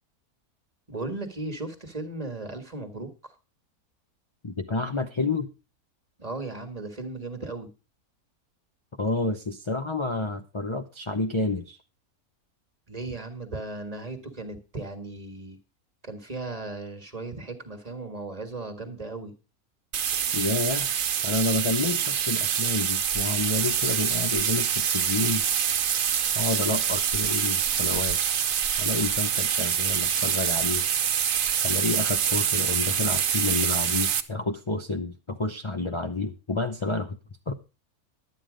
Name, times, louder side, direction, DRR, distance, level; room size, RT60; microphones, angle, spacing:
voice 1, 0.9-3.3 6.2-7.7 12.9-15.6 16.0-19.3, right 2 dB, 25° right, 7 dB, 1.8 m, -36 dB
voice 2, 4.4-5.5 9.0-11.8 20.3-20.9 21.2-25.4 26.3-28.2 28.8-30.8 31.6-37.2 37.5-37.6, left 3 dB, 25° left, 6 dB, 0.7 m, -29 dB
sound 1, 19.9-34.2, right 8 dB, 65° right, 1.3 m, -25 dB
11.5 x 9.5 x 5.1 m, 0.31 s
omnidirectional pair, 1.5 m